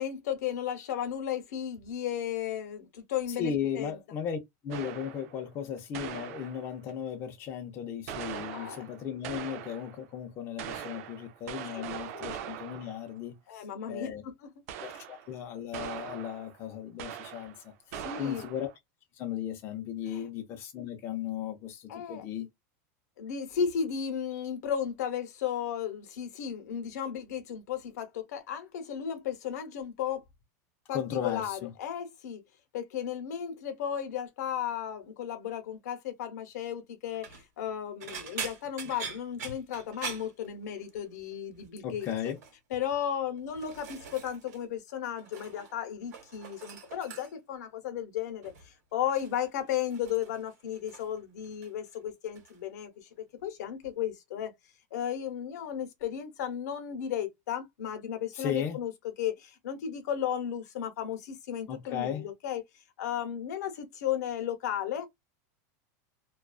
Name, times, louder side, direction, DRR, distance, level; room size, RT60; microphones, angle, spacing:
voice 1, 0.0-4.0 8.5-8.9 12.1-12.3 13.5-14.5 18.0-18.5 20.1-20.3 21.9-22.3 23.2-30.2 30.9-32.4 32.7-42.1 42.7-53.1 53.4-54.5 54.9-58.9 59.2-62.6 63.0-65.1, left 9 dB, 80° left, 0.8 m, -34 dB
voice 2, 3.3-14.2 14.8-18.7 19.1-22.5 30.9-31.7 41.8-42.4 58.3-58.8 61.7-62.3, left 8 dB, 30° left, 0.5 m, -36 dB
sound 1, 4.7-5.4 5.9-6.9 8.1-10.0 10.6-13.1 14.7-15.3 15.7-16.6 17.0-17.6 17.9-18.8, right 9 dB, 60° right, 0.4 m, -41 dB
sound 2, 37.0-37.4 38.0-41.0 41.3-41.7 42.0-42.5 43.2-44.6 44.9-45.7 46.0-47.5 48.4-48.7 49.1-51.2 51.4-52.0 52.3-52.6 53.8-53.9, right 6 dB, 85° right, 1.1 m, -43 dB
2.4 x 2.2 x 2.3 m
supercardioid pair, 165°, 9 cm